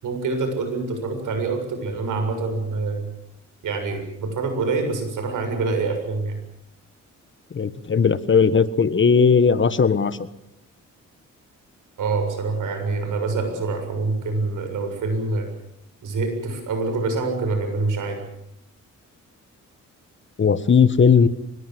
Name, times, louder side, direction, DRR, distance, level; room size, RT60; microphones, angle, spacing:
voice 1, 0.0-3.1 3.6-6.4 12.0-15.5 16.0-18.2, right 3 dB, 85° right, 6 dB, 7.3 m, -26 dB
voice 2, 7.5-10.2 20.4-21.3, left 6 dB, 40° left, 14 dB, 1.4 m, -17 dB
25.0 x 21.0 x 7.9 m, 0.78 s
cardioid pair, 100°, 30 cm